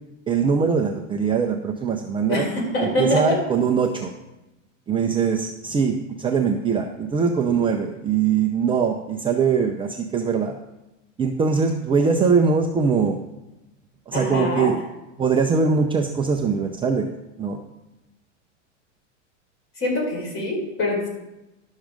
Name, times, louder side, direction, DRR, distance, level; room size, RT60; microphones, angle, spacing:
voice 1, 0.3-2.5 3.0-4.1 4.9-10.6 11.2-13.2 14.1-14.7 15.2-17.1 17.4-17.6, right 5 dB, 15° right, 2 dB, 0.6 m, -22 dB
voice 2, 2.3-3.4 14.1-14.7 19.8-21.1, left 1 dB, 35° left, 0 dB, 4.4 m, -24 dB
11.5 x 6.4 x 5.1 m, 0.97 s
hypercardioid pair, 120°, 38 cm